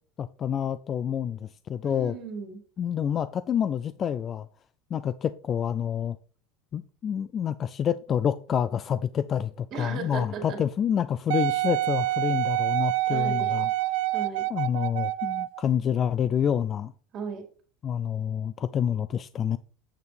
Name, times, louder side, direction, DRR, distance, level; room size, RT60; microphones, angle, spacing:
voice 1, 0.2-2.1 2.8-4.5 4.9-6.2 6.7-13.7 14.5-16.9 17.8-19.6, left 8 dB, 30° left, 0.3 m, -28 dB
voice 2, 1.8-2.6 9.7-10.6 13.1-13.6 14.1-14.5 17.1-17.4, right 5 dB, 45° right, 2.5 m, -36 dB
Wind instrument woodwind instrument, 11.3-15.6 16.3-16.4, right 17 dB, 80° right, 0.3 m, -27 dB
8.1 x 7.0 x 3.4 m
supercardioid pair, 135°, 0 cm